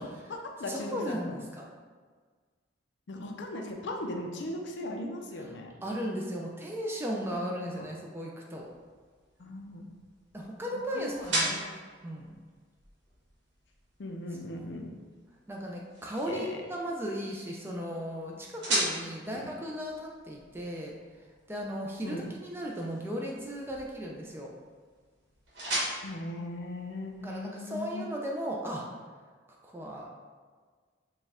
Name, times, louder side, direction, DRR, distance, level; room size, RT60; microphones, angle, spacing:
voice 1, 0.0-1.4 3.1-5.7 7.4-7.9 9.4-9.9 10.9-11.7 14.0-14.9 16.3-16.6 19.0-19.4 22.0-22.2 26.0-28.0, left 1 dB, 65° left, 2 dB, 0.5 m, -38 dB
voice 2, 0.7-1.6 5.4-5.5 5.8-8.7 10.3-11.6 12.0-12.4 14.6-14.7 15.5-20.9 21.5-24.5 27.2-28.8 29.6-30.2, equal, 10° right, -1 dB, 0.4 m, -36 dB
sound 1, 8.6-27.4, right 1 dB, 70° right, 1.3 m, -39 dB
4.4 x 2.3 x 3.5 m, 1.5 s
head